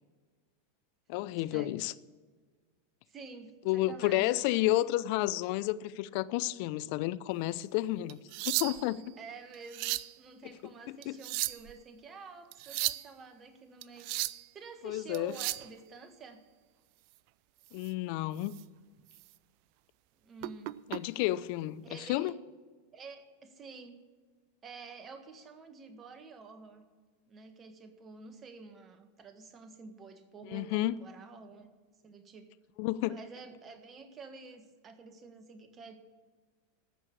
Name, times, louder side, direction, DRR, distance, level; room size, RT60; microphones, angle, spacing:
voice 1, 1.1-1.9 3.7-9.2 10.6-11.2 14.8-15.4 17.7-18.5 20.9-22.3 30.4-30.9 32.8-33.2, left 16 dB, 55° left, 0.5 m, -31 dB
voice 2, 3.1-4.8 9.2-14.1 14.5-16.4 20.2-20.8 21.8-22.3 22.9-24.0 24.6-26.9 27.3-31.7 32.0-32.5 33.0-36.0, right 4 dB, 30° right, 1.6 m, -49 dB
sound 1, 8.1-9.0 9.5-10.1 11.0-11.7 12.5-13.1 13.8-14.5 15.1-15.7 17.7-17.9 18.4-18.6 19.1-19.2 20.4-21.0 22.1-22.3, right 18 dB, 55° right, 0.4 m, -35 dB
14.5 x 6.4 x 8.6 m
hypercardioid pair, 95°, 0 cm